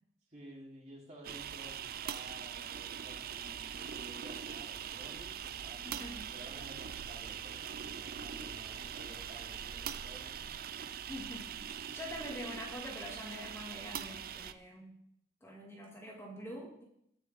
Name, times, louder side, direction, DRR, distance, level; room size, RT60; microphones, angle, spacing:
voice 1, 0.3-10.5, right 1 dB, 40° right, -4 dB, 3.7 m, -53 dB
sound 1, 1.2-14.5, right 8 dB, 55° right, 0.5 m, -42 dB
voice 2, 5.8-6.3 11.1-15.0 15.4-16.8, equal, 15° left, -2 dB, 2.4 m, -45 dB
20.5 x 6.9 x 3.7 m, 0.74 s
head